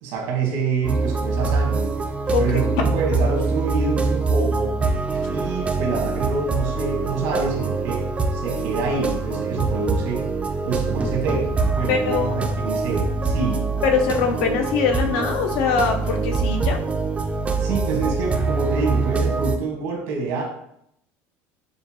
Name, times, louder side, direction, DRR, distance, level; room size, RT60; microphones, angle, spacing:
voice 1, 0.0-1.9 2.4-4.7 5.3-8.0 8.3-10.2 10.6-13.7 17.6-20.4, right 4 dB, 85° right, -1 dB, 1.4 m, -27 dB
sound 1, 0.8-19.6, right 3 dB, 20° right, 0.4 m, -24 dB
voice 2, 11.9-12.4 13.8-16.8, left 5 dB, 75° left, 4 dB, 0.7 m, -22 dB
6.7 x 2.2 x 2.8 m, 0.73 s
supercardioid pair, 125°, 7 cm